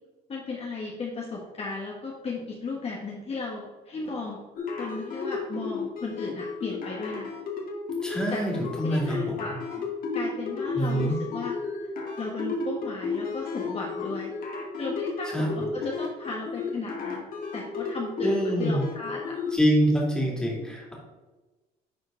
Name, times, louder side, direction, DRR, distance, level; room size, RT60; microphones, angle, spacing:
voice 1, 0.3-4.4 4.8-7.3 8.3-9.8 10.1-11.5 12.2-14.3 14.8-17.3 17.5-19.4 20.6-20.7, left 3 dB, 35° left, -2 dB, 1.3 m, -35 dB
sound 1, 4.5-19.6, left 4 dB, 60° left, 2.0 m, -33 dB
voice 2, 8.0-9.4 10.7-11.2 15.3-15.5 18.2-18.8 19.5-20.9, equal, 5° left, -2 dB, 2.5 m, -25 dB
10.0 x 4.4 x 3.8 m, 1.2 s
cardioid pair, 110°, 17 cm